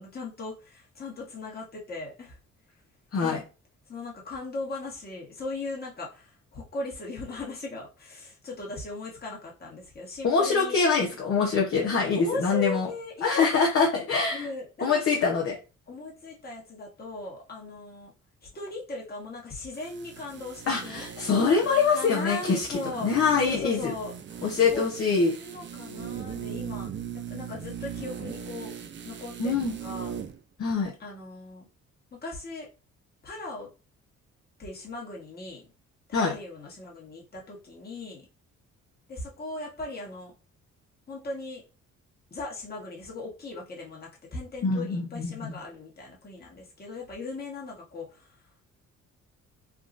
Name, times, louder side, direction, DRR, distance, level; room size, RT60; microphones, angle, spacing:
voice 1, 0.0-2.4 3.1-3.4 3.9-10.8 12.1-13.3 13.6-13.7 14.3-15.2 15.9-18.1 18.4-21.1 21.9-23.1 23.4-24.1 24.7-24.8 25.4-26.9 27.3-28.7 29.0-30.2 31.0-31.7 32.1-32.7 33.2-33.7 34.6-35.6 36.1-38.2 39.1-40.3 41.1-41.6 42.3-48.4, left 3 dB, 30° left, -3 dB, 1.4 m, -38 dB
voice 2, 10.2-12.9 13.2-14.5 14.8-15.6 20.7-22.7 23.0-23.9 24.4-25.4 29.4-29.7 30.6-30.9 36.1-36.3 44.6-45.6, left 5 dB, 50° left, -2 dB, 0.9 m, -24 dB
sound 1, 19.7-30.4 30.7-30.8, right 8 dB, 40° right, 0.4 m, -39 dB
3.6 x 2.4 x 2.5 m, 0.31 s
cardioid pair, 90°, 30 cm